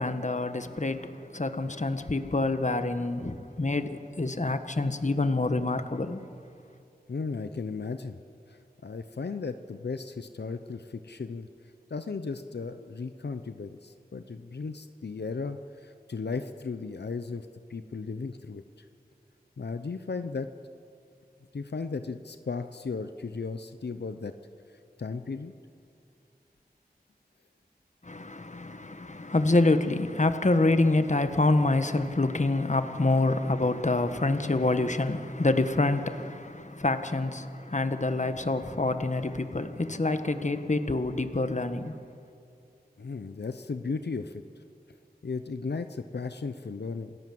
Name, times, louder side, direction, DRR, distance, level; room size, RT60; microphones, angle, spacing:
voice 1, 0.0-6.2 28.0-41.9, left 2 dB, 45° left, 1.5 m, -27 dB
voice 2, 7.1-8.2 8.5-11.5 11.9-18.9 19.6-20.5 21.5-24.4 24.7-25.5 43.0-44.4 45.2-47.2, left 4 dB, 85° left, 0.8 m, -36 dB
28.5 x 17.0 x 7.8 m
wide cardioid pair, 45°, 17 cm